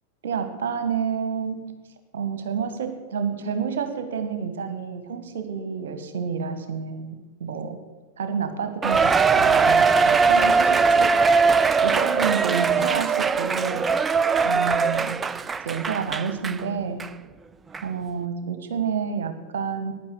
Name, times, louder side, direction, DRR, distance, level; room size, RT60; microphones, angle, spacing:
voice 1, 0.2-1.7 2.1-7.1 7.4-7.8 8.2-11.2 11.8-13.9 14.4-15.2 15.6-17.1 17.8-19.9, right 6 dB, 60° right, 8 dB, 1.5 m, -29 dB
Cheering, 8.8-16.6 17.0-17.1 17.7-17.8, right 5 dB, 15° right, 0.3 m, -20 dB
10.5 x 9.9 x 7.7 m, 1.2 s
figure-of-eight pair, 90°, 0 cm